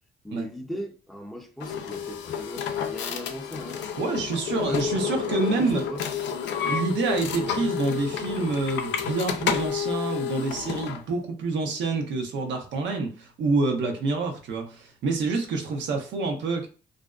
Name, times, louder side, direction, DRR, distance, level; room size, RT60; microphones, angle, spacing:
voice 1, 0.2-3.8 4.7-4.8 5.2-6.0, equal, ahead, 0.5 m, -38 dB
sound 1, 1.6-11.0, left 8 dB, 75° left, 0.4 m, -30 dB
voice 2, 4.0-5.8 6.6-16.7, right 3 dB, 75° right, 0.7 m, -27 dB
2.5 x 2.1 x 2.3 m
cardioid pair, 85°, 19 cm